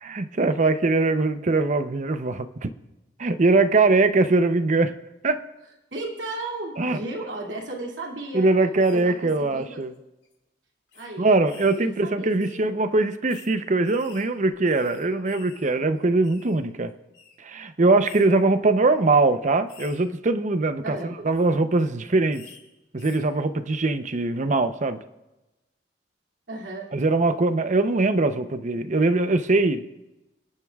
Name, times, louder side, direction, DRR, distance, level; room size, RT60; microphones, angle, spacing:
voice 1, 0.0-2.7 3.2-4.9 5.2-5.4 6.8-7.0 8.3-9.9 11.2-16.9 17.4-22.4 22.9-25.0 26.9-29.8, right 3 dB, 45° right, 10 dB, 0.7 m, -22 dB
voice 2, 5.9-8.5 8.9-9.8 10.9-11.3 11.7-12.5 20.8-21.1 26.5-26.9, right 2 dB, 90° right, -1 dB, 2.5 m, -34 dB
sound 1, 8.8-9.0 9.8-10.0 10.2-10.3 10.9-11.1 11.5-11.9 12.4-12.6 13.3-13.5 13.8-15.7 16.0-16.6 17.1-17.3 18.0-18.3 18.8-19.0 19.7-20.0 21.2-21.5 22.3-22.6 23.0-23.2, left 7 dB, 70° left, 3.9 m, -49 dB
28.0 x 10.5 x 2.4 m, 1.0 s
head